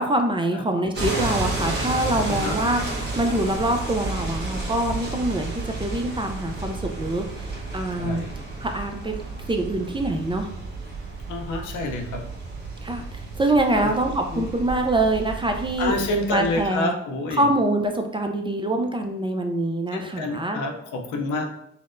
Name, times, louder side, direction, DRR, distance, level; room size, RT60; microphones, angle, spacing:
voice 1, 0.0-2.8 3.2-5.5 5.8-8.2 8.6-9.2 9.5-10.5 12.8-15.9 16.3-17.0 17.3-20.8, right 1 dB, 15° right, 4 dB, 0.4 m, -24 dB
sound 1, 0.9-16.7, right 2 dB, 35° right, 1.1 m, -32 dB
voice 2, 2.3-2.6 8.0-8.3 11.3-12.2 13.8-13.9 14.3-14.4 15.8-17.5 19.9-21.5, left 2 dB, 75° left, 3 dB, 0.6 m, -28 dB
sound 2, 3.2-16.1, right 3 dB, 70° right, 0.6 m, -40 dB
4.1 x 2.0 x 2.5 m, 0.76 s
supercardioid pair, 60°, 30 cm